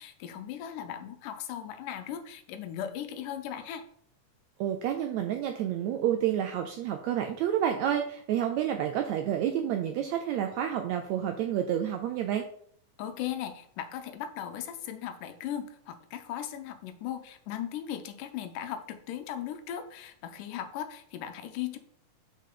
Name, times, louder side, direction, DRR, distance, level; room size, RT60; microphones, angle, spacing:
voice 1, 0.0-3.8 13.0-21.8, left 10 dB, 90° left, 8 dB, 2.3 m, -37 dB
voice 2, 4.6-12.5, right 10 dB, 80° right, 5 dB, 1.6 m, -29 dB
7.3 x 5.6 x 3.9 m, 0.64 s
omnidirectional pair, 3.7 m